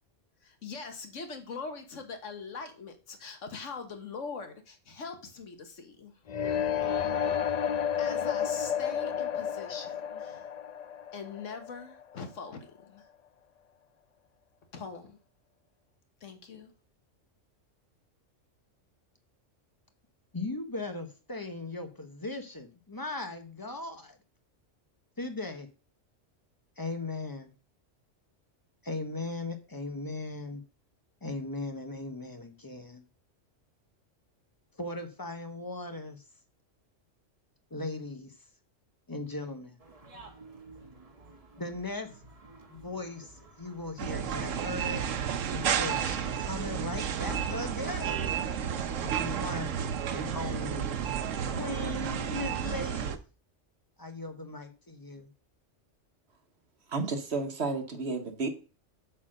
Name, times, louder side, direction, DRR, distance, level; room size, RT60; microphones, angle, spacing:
voice 1, 0.4-6.1 7.2-7.5 8.0-10.5 11.1-13.1 14.7-15.2 16.2-16.7, left 4 dB, 80° left, 1.6 m, -42 dB
sound 1, 6.3-12.2, left 8 dB, 50° left, 0.5 m, -31 dB
voice 2, 20.3-24.2 25.2-25.7 26.8-27.5 28.8-30.6 31.2-33.0 34.8-36.2 37.7-38.3 39.1-39.8 41.6-42.1 42.7-45.0 45.5-48.2 49.0-49.8 50.1-50.8 51.5-53.2 54.0-55.3, left 2 dB, 20° left, 1.1 m, -38 dB
sound 2, 39.8-52.8, right 3 dB, 30° right, 1.3 m, -52 dB
sound 3, 44.0-53.2, right 8 dB, 85° right, 1.1 m, -32 dB
voice 3, 56.9-58.5, right 3 dB, 60° right, 1.4 m, -32 dB
8.2 x 4.4 x 6.4 m
omnidirectional pair, 1.3 m